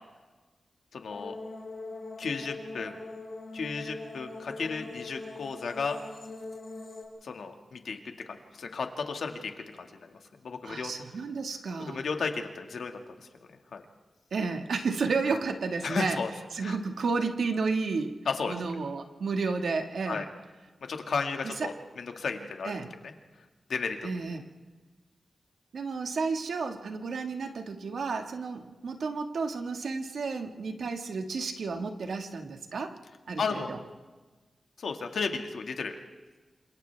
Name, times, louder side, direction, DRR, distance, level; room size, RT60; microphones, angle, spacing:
voice 1, 0.9-1.4 2.2-3.0 3.5-6.0 7.2-8.0 8.2-9.5 9.8-10.9 11.8-13.3 13.7-13.8 15.8-16.3 16.6-16.8 18.3-18.6 20.1-20.2 20.9-22.7 23.0-23.1 23.7-24.0 33.4-33.7 34.8-36.0, left 5 dB, 85° left, 4 dB, 1.9 m, -34 dB
sound 1, 1.1-7.0, left 3 dB, 45° left, 4.4 m, -42 dB
voice 2, 10.6-12.0 14.3-16.2 16.5-18.1 18.5-20.3 21.4-21.7 22.6-22.9 24.0-24.4 25.7-32.9 33.3-33.8, right 4 dB, 85° right, 4 dB, 1.8 m, -32 dB
28.5 x 27.0 x 3.5 m, 1.3 s
wide cardioid pair, 145°, 0 cm